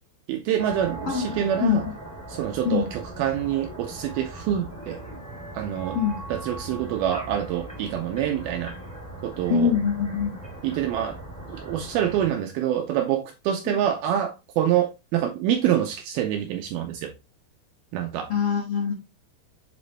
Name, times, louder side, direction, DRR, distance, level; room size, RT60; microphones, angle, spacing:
voice 1, 0.3-1.8 2.3-5.0 5.5-6.0 6.3-8.7 9.2-9.8 10.6-11.2 11.5-17.1 17.9-18.3, right 10 dB, 85° right, 2.2 m, -26 dB
sound 1, 0.6-12.3, right 2 dB, 5° left, 1.4 m, -39 dB
voice 2, 1.0-1.8 2.6-2.9 5.9-6.2 9.5-10.4 13.7-13.8 18.3-18.9, left 7 dB, 70° left, 1.3 m, -24 dB
7.8 x 4.1 x 3.0 m
omnidirectional pair, 4.9 m